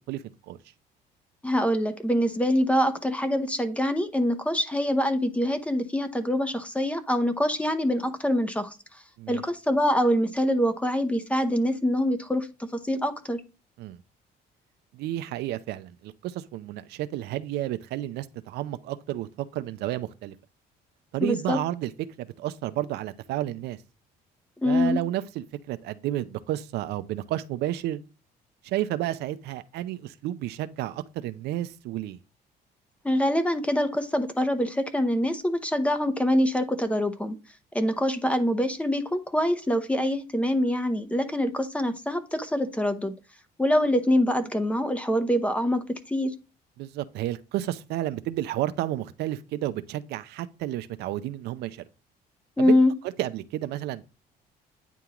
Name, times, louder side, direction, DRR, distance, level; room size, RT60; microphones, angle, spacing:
voice 1, 0.1-0.6 9.2-9.4 13.8-14.0 14.9-20.3 21.1-21.9 22.2-23.8 24.6-28.0 28.6-32.2 46.8-51.8 52.6-52.8 53.2-54.1, right 14 dB, 80° right, 0.5 m, -31 dB
voice 2, 1.4-8.8 9.3-13.4 21.2-21.6 24.6-25.0 33.0-37.4 37.7-43.1 43.6-46.3 52.6-52.9, left 1 dB, 5° left, 0.8 m, -25 dB
9.2 x 3.5 x 3.0 m
cardioid pair, 110°, 17 cm